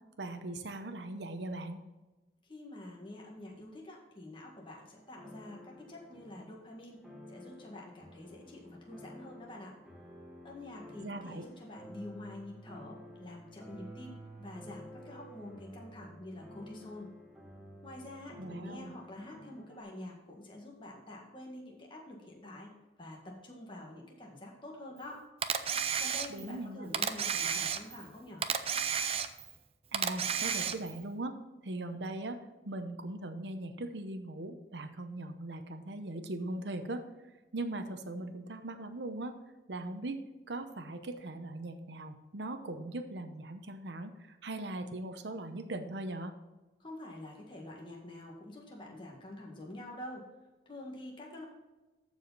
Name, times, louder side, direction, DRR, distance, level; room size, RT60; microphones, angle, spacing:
voice 1, 0.2-1.8 11.0-11.4 18.4-18.9 26.3-26.9 29.9-31.3 31.6-32.4 32.6-37.0 37.5-39.3 39.7-40.2 40.5-46.3, right 2 dB, 90° right, 7 dB, 0.8 m, -40 dB
voice 2, 2.5-7.0 7.3-9.7 10.4-17.1 17.8-22.7 23.0-25.2 26.0-28.4 46.8-50.2 50.7-51.5, left 1 dB, 30° left, -1 dB, 1.8 m, -47 dB
sound 1, 4.9-19.8, equal, 5° right, 1.4 m, -52 dB
Camera, 25.4-26.6 26.9-28.1 28.4-29.6 29.9-31.0, right 7 dB, 35° right, 0.5 m, -32 dB
14.0 x 4.9 x 4.1 m, 1.1 s
head